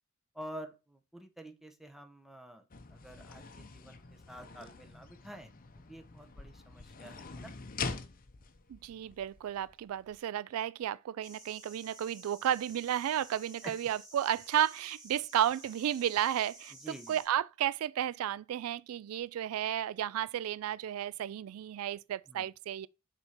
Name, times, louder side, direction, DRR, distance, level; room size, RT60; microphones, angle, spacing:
voice 1, 0.3-5.5 5.9-7.5 13.6-13.7 16.7-17.2 22.3-22.5, right 1 dB, ahead, 1.0 m, -49 dB
sound 1, 2.7-10.2, left 4 dB, 40° left, 0.8 m, -44 dB
voice 2, 8.7-16.7 17.1-22.9, right 10 dB, 80° right, 0.3 m, -33 dB
sound 2, 11.2-17.3, right 1 dB, 20° right, 4.3 m, -53 dB
7.0 x 4.4 x 5.1 m
head